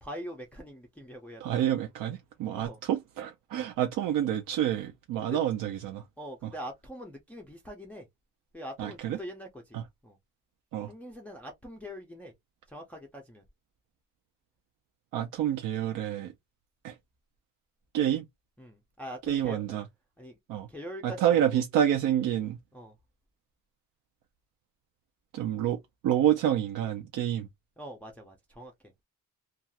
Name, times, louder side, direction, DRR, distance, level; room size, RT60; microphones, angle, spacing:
voice 1, 0.0-1.6 2.5-2.8 5.2-5.4 6.2-8.1 8.5-9.8 10.0-10.2 10.9-12.3 12.7-13.4 18.6-19.8 20.2-20.4 20.7-21.6 22.7-23.0 27.8-28.7, equal, 5° left, 0.4 m, -43 dB
voice 2, 1.4-6.0 6.4-6.5 8.8-9.2 9.7-9.8 10.7-10.9 15.1-16.3 16.8-17.0 17.9-18.2 19.3-19.8 20.5-20.7 21.0-22.6 25.3-25.8 26.0-27.5, right 11 dB, 75° right, 0.5 m, -28 dB
2.4 x 2.3 x 2.8 m
cardioid pair, 170°, 32 cm